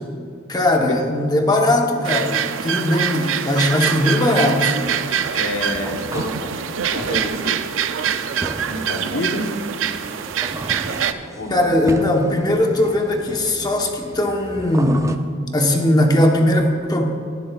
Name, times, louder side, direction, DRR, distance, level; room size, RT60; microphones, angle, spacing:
voice 1, 0.5-4.8 11.5-15.1 15.5-17.0, left 1 dB, 20° left, 2 dB, 1.0 m, -19 dB
sound 1, 2.0-11.1, right 8 dB, 75° right, 0.4 m, -24 dB
sound 2, 4.8-15.2, right 2 dB, 15° right, 0.4 m, -35 dB
voice 2, 5.3-7.6 8.7-9.6 11.3-11.7, left 1 dB, 75° left, 2 dB, 0.9 m, -28 dB
17.5 x 9.7 x 2.3 m, 2.2 s
head